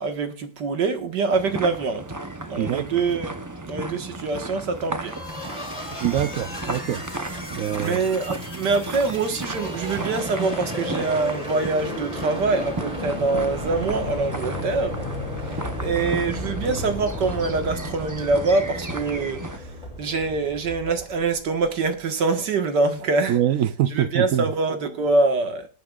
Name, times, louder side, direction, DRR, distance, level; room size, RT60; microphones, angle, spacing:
voice 1, 0.0-2.1 2.5-3.4 3.7-5.2 6.2-6.3 7.8-15.1 15.4-19.7 20.0-23.4 23.9-25.7, right 3 dB, 85° right, 2.2 m, -24 dB
sound 1, 1.3-19.6, right 2 dB, 20° right, 0.5 m, -34 dB
voice 2, 2.5-2.9 6.0-7.0 7.5-8.0 23.3-24.4, right 11 dB, 65° right, 0.9 m, -24 dB
sound 2, 5.1-21.7, left 1 dB, 25° left, 2.7 m, -34 dB
21.0 x 8.7 x 2.4 m
omnidirectional pair, 1.8 m